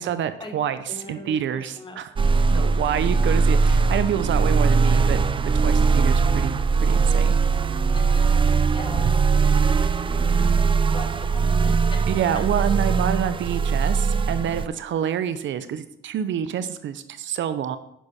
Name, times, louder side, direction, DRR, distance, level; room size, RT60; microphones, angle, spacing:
voice 1, 0.0-0.8 1.1-2.1 2.5-5.2 5.5-7.4 12.1-17.8, right 9 dB, 70° right, 12 dB, 0.7 m, -27 dB
voice 2, 0.9-2.0 2.5-2.7 7.9-8.5 8.7-9.0 9.6-10.6 10.9-12.0, left 1 dB, 25° left, 4 dB, 1.7 m, -40 dB
sound 1, 2.2-14.7, right 4 dB, 25° right, 0.4 m, -20 dB
10.0 x 6.2 x 4.3 m, 0.76 s
cardioid pair, 90°, 20 cm